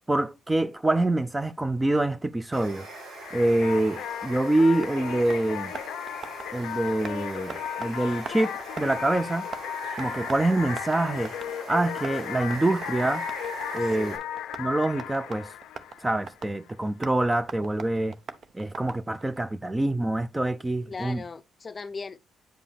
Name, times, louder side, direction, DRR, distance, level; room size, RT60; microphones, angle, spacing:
voice 1, 0.1-2.9 3.3-5.7 6.5-9.5 10.0-11.3 11.7-13.3 13.7-14.2 14.6-15.5 16.0-18.2 18.5-21.2, right 2 dB, 15° right, 0.4 m, -25 dB
Water, 2.5-14.2, right 2 dB, 85° right, 3.0 m, -41 dB
sound 1, 3.2-16.7, left 11 dB, 85° left, 0.4 m, -36 dB
Tap, 3.9-19.4, right 5 dB, 55° right, 0.7 m, -45 dB
voice 2, 20.9-22.2, left 4 dB, 35° left, 0.6 m, -38 dB
8.9 x 5.0 x 3.4 m
cardioid pair, 90°, 0 cm